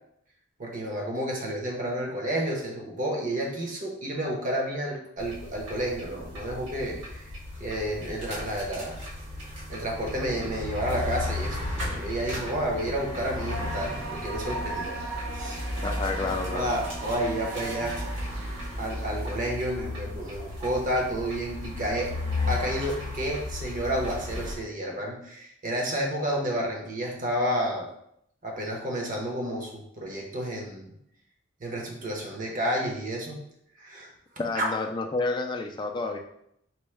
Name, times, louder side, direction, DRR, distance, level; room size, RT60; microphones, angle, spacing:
voice 1, 0.6-7.3 7.6-9.1 9.7-15.0 15.3-15.6 16.5-17.9 18.8-22.1 22.5-27.9 28.4-30.9 31.6-33.4 33.8-34.1 34.5-34.7, right 1 dB, 40° right, 0 dB, 0.8 m, -30 dB
sound 1, 5.2-24.5, left 2 dB, 65° right, 1.4 m, -35 dB
sound 2, 13.5-19.5, right 2 dB, 85° right, 0.7 m, -38 dB
voice 2, 15.8-16.7 34.4-36.2, left 3 dB, 20° left, 4 dB, 0.3 m, -30 dB
4.4 x 2.1 x 3.2 m, 0.74 s
head